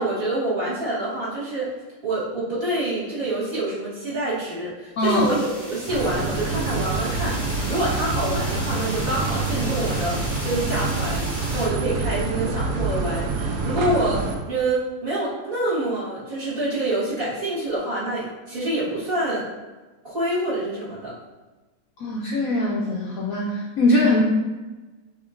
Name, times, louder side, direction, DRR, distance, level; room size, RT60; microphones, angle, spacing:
voice 1, 0.0-1.7 2.0-10.2 10.4-19.5 20.0-21.1, right 1 dB, 35° right, -9 dB, 1.7 m, -26 dB
voice 2, 5.0-5.3 22.0-24.2, left 1 dB, 70° left, -2 dB, 0.8 m, -21 dB
sound 1, 5.0-11.7, equal, 5° left, 0.9 m, -35 dB
sound 2, 5.9-14.4, right 3 dB, 75° right, 1.1 m, -26 dB
6.3 x 2.8 x 2.5 m, 1.2 s
omnidirectional pair, 1.9 m